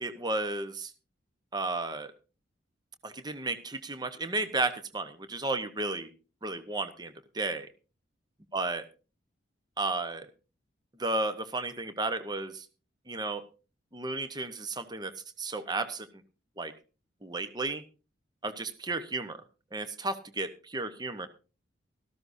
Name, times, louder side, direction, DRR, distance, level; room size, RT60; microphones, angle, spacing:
voice 1, 0.0-0.9 1.5-2.1 3.0-6.1 6.4-7.7 8.5-8.8 9.8-10.3 11.0-12.7 13.1-13.4 13.9-15.1 15.4-16.1 16.6-16.7 17.2-17.8 18.4-19.4 19.7-21.3, right 2 dB, 20° right, 10 dB, 1.0 m, -33 dB
17.5 x 14.0 x 2.7 m, 0.33 s
head